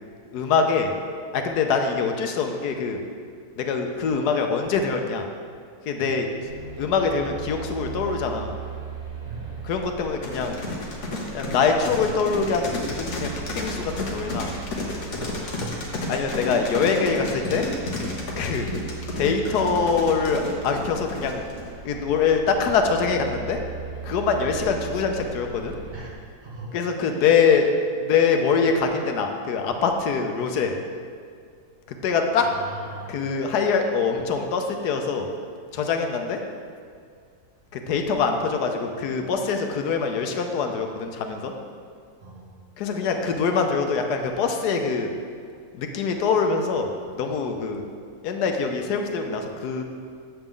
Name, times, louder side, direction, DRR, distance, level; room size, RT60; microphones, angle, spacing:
voice 1, 0.3-0.9 1.3-3.0 3.6-5.3 5.9-6.3 6.8-8.5 9.6-10.6 11.3-14.5 16.1-17.6 18.4-18.7 19.2-21.4 21.8-23.6 24.0-25.7 26.7-30.7 32.0-32.5 33.1-35.3 35.7-36.4 37.7-41.5 42.8-45.1 45.7-47.8 48.2-49.8, left 5 dB, 75° left, 4 dB, 1.2 m, -24 dB
sound 1, 6.4-26.1, right 5 dB, 30° right, 1.3 m, -38 dB
sound 2, 10.2-21.7, left 2 dB, 50° left, 1.3 m, -32 dB
voice 2, 15.1-15.8 25.9-26.1 26.4-26.7 27.0-27.2 32.4-33.2 42.2-42.5, right 2 dB, 85° right, -7 dB, 2.6 m, -40 dB
7.9 x 7.3 x 3.7 m, 2.2 s
omnidirectional pair, 1.8 m